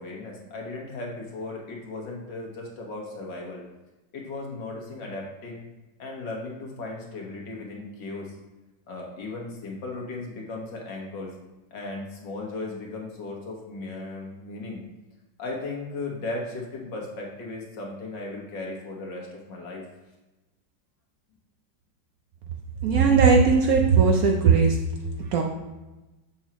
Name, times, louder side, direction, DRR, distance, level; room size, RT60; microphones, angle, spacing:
voice 1, 0.0-3.6 4.1-5.6 6.0-8.3 8.9-11.3 11.7-14.8 15.4-19.8, left 2 dB, 75° left, -1 dB, 2.0 m, -36 dB
voice 2, 22.8-24.8 25.3-25.4, right 5 dB, 65° right, 2 dB, 0.9 m, -18 dB
7.1 x 6.3 x 3.0 m, 1.1 s
omnidirectional pair, 2.0 m